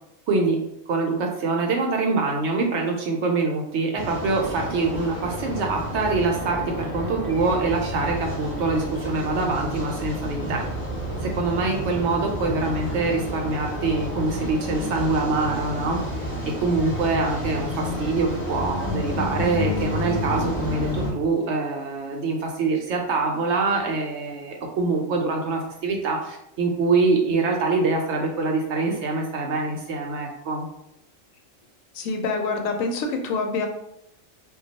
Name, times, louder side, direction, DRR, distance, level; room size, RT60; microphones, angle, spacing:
voice 1, 0.9-10.6 11.2-16.0 16.6-30.7, right 3 dB, 70° right, 1 dB, 0.8 m, -24 dB
sound 1, 4.0-21.1, left 1 dB, 20° left, 0.4 m, -30 dB
voice 2, 31.9-33.7, left 3 dB, 90° left, 3 dB, 1.0 m, -26 dB
2.3 x 2.2 x 3.9 m, 0.79 s
omnidirectional pair, 1.3 m